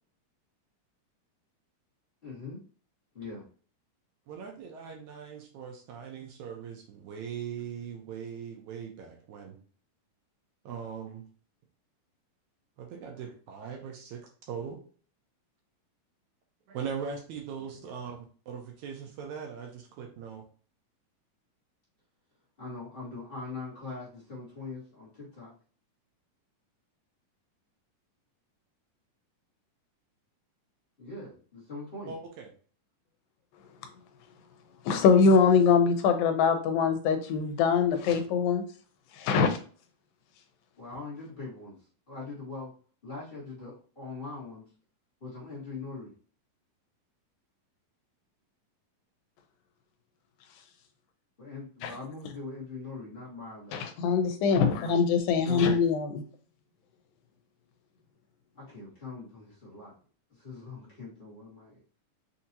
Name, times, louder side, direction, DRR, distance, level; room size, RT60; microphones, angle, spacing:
voice 1, 2.2-2.6 3.1-3.5 17.6-17.9 22.6-25.5 31.0-32.2 40.8-41.8 42.1-42.7 43.0-44.6 45.2-46.1 51.4-53.8 54.8-55.0 55.3-55.8 58.5-59.9 60.3-61.8, left 3 dB, 45° left, -8 dB, 0.7 m, -42 dB
voice 2, 4.3-9.6 10.7-11.2 12.8-14.8 16.7-18.2 18.5-20.4 32.1-32.5, right 7 dB, 75° right, 2 dB, 1.8 m, -40 dB
voice 3, 34.9-38.6 39.2-39.6 51.8-51.9 53.7-56.2, left 5 dB, 85° left, 7 dB, 2.4 m, -23 dB
6.0 x 2.8 x 2.7 m, 0.42 s
omnidirectional pair, 4.1 m